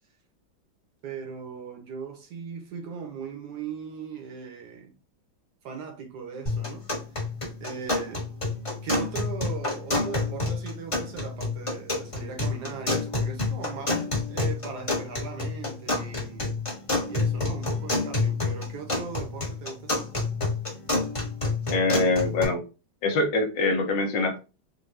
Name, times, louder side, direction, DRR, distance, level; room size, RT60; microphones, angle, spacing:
voice 1, 1.0-5.0 5.6-6.8 7.6-8.3 8.8-16.5 17.0-20.1, right 6 dB, 65° right, 1.3 m, -38 dB
sound 1, 6.5-22.5, left 3 dB, 20° left, 0.9 m, -29 dB
voice 2, 21.7-22.6 23.0-24.4, left 2 dB, 70° left, 1.3 m, -24 dB
3.9 x 2.3 x 3.3 m
omnidirectional pair, 2.2 m